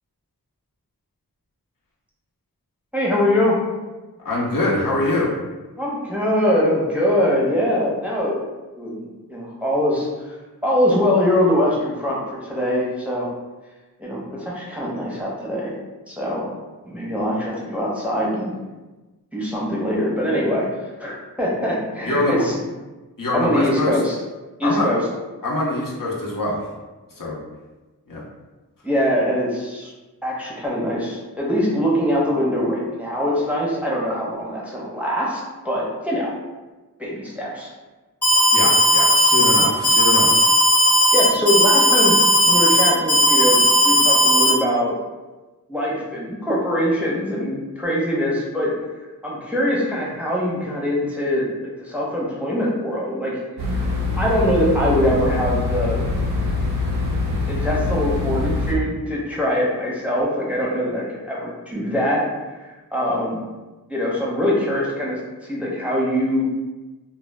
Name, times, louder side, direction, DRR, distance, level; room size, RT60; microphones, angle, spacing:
voice 1, 2.9-3.6 5.8-8.4 8.8-10.1 10.6-13.3 14.0-15.7 16.1-16.5 16.8-18.5 19.3-20.7 21.0-22.6 23.3-24.1 24.6-25.0 28.8-29.9 30.2-36.3 37.0-37.7 41.1-43.6 43.8-45.0 45.7-48.7 49.2-51.5 51.8-53.3 53.7-53.9 54.2-56.0 57.5-62.2 62.5-63.4 63.9-66.5, equal, 5° right, -5 dB, 0.6 m, -23 dB
voice 2, 4.2-5.3 22.0-22.5 23.2-24.0 24.6-24.9 25.4-26.6 27.2-27.4 28.1-28.2 38.5-40.4, left 2 dB, 60° left, -5 dB, 0.6 m, -23 dB
Alarm, 38.2-44.5, equal, 80° left, 0.9 m, -16 dB
sound 1, 53.6-58.7, left 3 dB, 80° right, 0.7 m, -24 dB
2.1 x 2.0 x 3.3 m, 1.2 s
wide cardioid pair, 50°, 38 cm